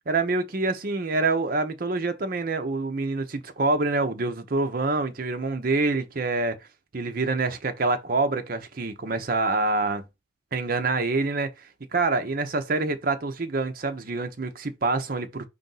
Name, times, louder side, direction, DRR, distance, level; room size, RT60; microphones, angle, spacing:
voice 1, 0.1-6.6 6.9-10.0 10.5-11.5 11.9-15.5, right 3 dB, 45° right, 0.6 m, -26 dB
5.3 x 2.6 x 3.9 m
head